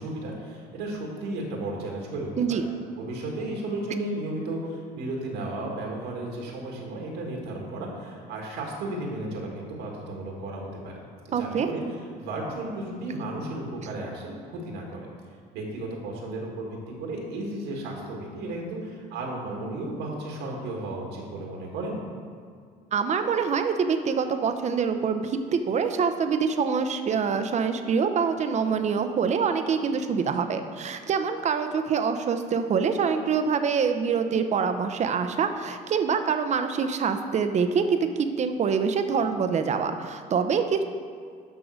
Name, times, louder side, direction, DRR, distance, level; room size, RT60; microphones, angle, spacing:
voice 1, 0.0-2.7 2.9-11.0 11.4-11.8 12.2-15.1 15.5-22.0, right 2 dB, 90° right, 0 dB, 1.9 m, -34 dB
voice 2, 11.3-11.7 13.1-13.2 22.9-40.8, right 6 dB, 45° right, 8 dB, 0.7 m, -25 dB
11.0 x 3.8 x 6.4 m, 2.1 s
cardioid pair, 110°, 17 cm